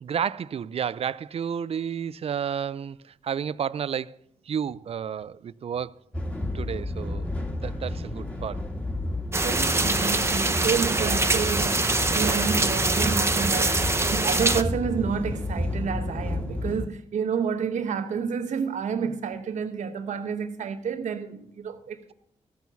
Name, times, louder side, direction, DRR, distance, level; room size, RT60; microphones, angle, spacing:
voice 1, 0.0-6.0 6.5-8.7 10.9-11.3 12.2-12.5, right 8 dB, 55° right, 0.4 m, -32 dB
sound 1, 6.1-16.9, left 1 dB, 10° left, 1.9 m, -31 dB
sound 2, 9.3-14.6, right 2 dB, 20° right, 0.7 m, -24 dB
voice 2, 9.4-22.1, right 6 dB, 80° right, 0.9 m, -30 dB
14.0 x 6.3 x 6.9 m
cardioid pair, 75°, 12 cm